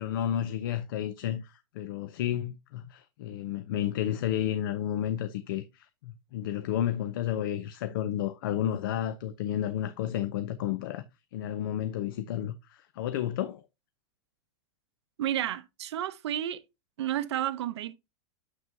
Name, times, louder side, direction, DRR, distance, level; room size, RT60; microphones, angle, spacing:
voice 1, 0.0-11.0 11.3-13.6, left 11 dB, 55° left, 0.6 m, -31 dB
voice 2, 15.2-16.6 17.0-18.0, right 11 dB, 90° right, 0.7 m, -31 dB
7.3 x 6.1 x 2.7 m
supercardioid pair, 175°, 14 cm